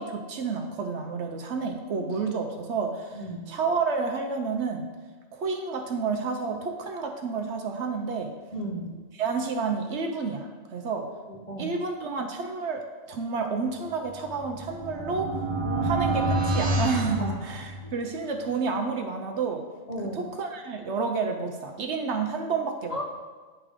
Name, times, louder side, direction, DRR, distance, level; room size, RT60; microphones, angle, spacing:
voice 1, 0.0-4.9 5.3-8.3 9.1-11.1 11.6-15.4 15.8-19.6 20.1-23.0, right 4 dB, 60° right, 4 dB, 0.9 m, -30 dB
voice 2, 3.1-3.5 8.5-9.0 11.3-11.7 15.6-16.0 17.2-17.3 17.8-17.9 19.9-20.2 22.9-23.0, equal, 30° left, -3 dB, 0.9 m, -35 dB
sound 1, 14.1-18.1, right 1 dB, 90° right, 1.4 m, -28 dB
9.7 x 3.6 x 5.0 m, 1.3 s
omnidirectional pair, 1.4 m